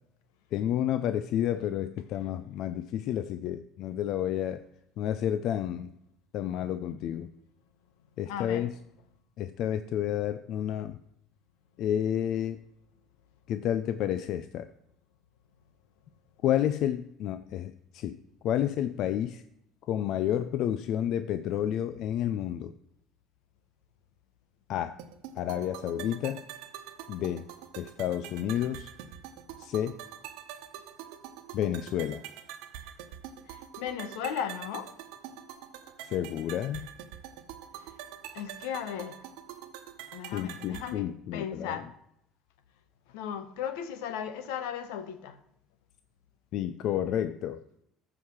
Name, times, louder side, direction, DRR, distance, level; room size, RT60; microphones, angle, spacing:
voice 1, 0.5-4.7 5.0-5.9 6.3-7.3 8.2-8.8 9.4-11.0 11.8-12.6 13.5-14.7 16.4-18.2 18.4-19.4 19.9-22.7 24.7-25.0 25.4-26.4 27.1-27.5 27.8-28.9 29.6-30.0 31.5-32.2 36.0-36.9 40.3-41.9 46.5-47.6, left 10 dB, 65° left, 0.5 m, -30 dB
voice 2, 8.3-8.6 33.5-34.9 38.3-39.2 40.1-41.1 41.3-41.9 43.1-45.3, left 8 dB, 90° left, 1.1 m, -36 dB
sound 1, 25.0-41.0, right 10 dB, 85° right, 1.1 m, -45 dB
14.0 x 4.9 x 6.3 m
supercardioid pair, 90°, 0 cm